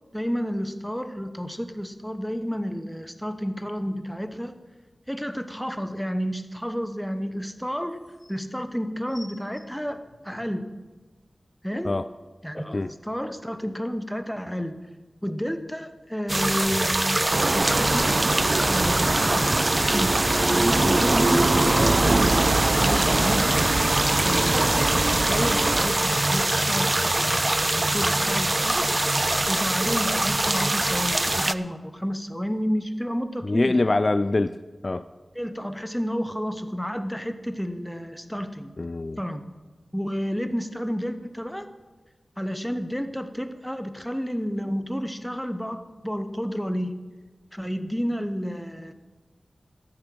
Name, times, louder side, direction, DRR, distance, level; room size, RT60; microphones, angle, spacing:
voice 1, 0.1-4.6 5.1-8.0 8.3-10.0 10.2-10.7 11.6-11.9 12.4-14.8 15.2-18.3 18.6-23.6 24.3-27.2 27.7-28.9 29.5-33.9 35.3-38.7 39.2-39.4 39.9-41.7 42.4-47.1 47.5-48.9, equal, ahead, 10 dB, 0.8 m, -31 dB
sound 1, 7.8-8.3 9.1-10.7 11.4-11.5, left 1 dB, 85° left, 4.2 m, -50 dB
sound 2, 16.3-31.5, right 2 dB, 30° right, 0.4 m, -24 dB
sound 3, 17.3-25.8, right 2 dB, 50° right, 0.7 m, -24 dB
voice 2, 33.4-34.6 34.8-35.1 38.8-39.2, left 2 dB, 45° left, 13 dB, 0.3 m, -24 dB
13.0 x 8.9 x 6.1 m, 1.3 s
wide cardioid pair, 85°, 0 cm